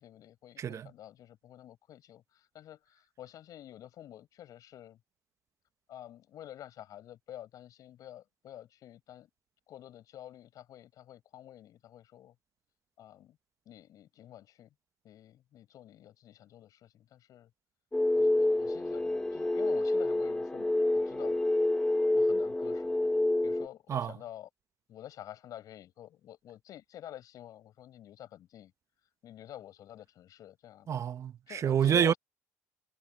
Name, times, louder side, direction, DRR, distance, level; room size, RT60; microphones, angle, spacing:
voice 1, 0.0-5.0 5.9-9.3 9.7-12.4 13.0-13.4 13.7-14.7 15.0-17.5 18.1-21.4 22.1-23.0 23.4-24.5 24.9-28.7 29.2-30.9 31.5-32.2, left 12 dB, 65° left, 7.0 m, -49 dB
voice 2, 0.6-0.9 23.9-24.1 30.9-32.1, right 9 dB, 50° right, 0.9 m, -28 dB
sound 1, 17.9-23.7, left 2 dB, 10° left, 0.7 m, -28 dB
supercardioid pair, 70°, 7 cm